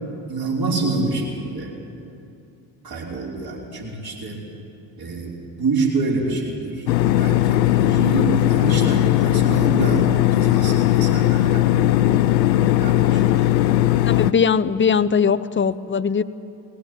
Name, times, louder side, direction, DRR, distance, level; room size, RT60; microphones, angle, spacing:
voice 1, 0.3-1.7 2.8-4.5 5.0-6.9 7.1-12.1 12.6-13.5, right 3 dB, 45° right, -3 dB, 5.8 m, -27 dB
sound 1, 6.9-14.3, left 13 dB, 90° left, 0.6 m, -18 dB
voice 2, 14.1-16.2, left 6 dB, 25° left, 16 dB, 0.8 m, -20 dB
20.0 x 16.5 x 9.0 m, 2.8 s
hypercardioid pair, 45°, 49 cm